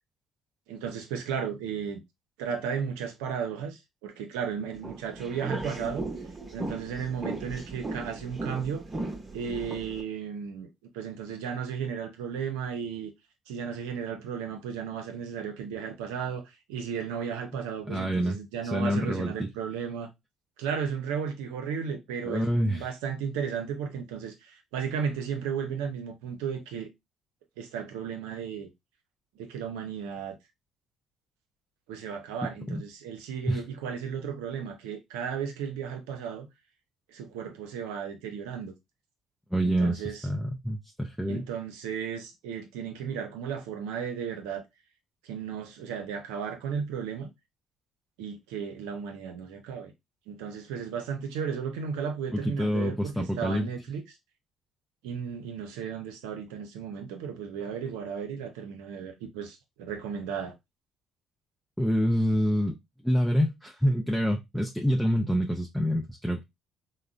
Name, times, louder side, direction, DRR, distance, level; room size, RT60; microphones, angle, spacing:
voice 1, 0.7-2.0 2.4-6.0 6.5-8.8 9.3-13.1 13.5-20.1 20.6-26.9 27.6-28.7 29.4-30.4 31.9-36.5 37.1-38.7 39.6-40.3 41.3-44.6 45.2-47.3 48.2-49.9 50.3-54.2 55.0-60.5, right 7 dB, 85° right, 0.6 m, -34 dB
sound 1, 4.8-10.0, right 2 dB, 25° right, 1.0 m, -37 dB
voice 2, 17.9-18.4 18.7-19.5 22.2-22.9 32.7-32.8 33.5-33.6 39.5-41.5 52.3-53.7 61.8-62.7 63.0-66.4, equal, 5° left, 0.5 m, -27 dB
3.6 x 2.1 x 2.4 m
supercardioid pair, 70°, 0 cm